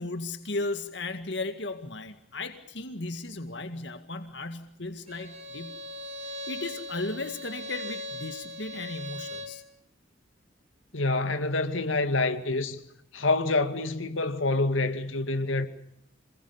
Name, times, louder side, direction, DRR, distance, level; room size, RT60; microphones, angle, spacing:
voice 1, 0.0-5.8 6.5-9.6, left 2 dB, 65° left, 2.0 m, -35 dB
Bowed string instrument, 5.1-9.6, equal, 35° right, 3.7 m, -39 dB
voice 2, 10.9-12.8 13.1-15.7, left 2 dB, 90° left, 2.4 m, -27 dB
27.5 x 21.5 x 7.1 m
head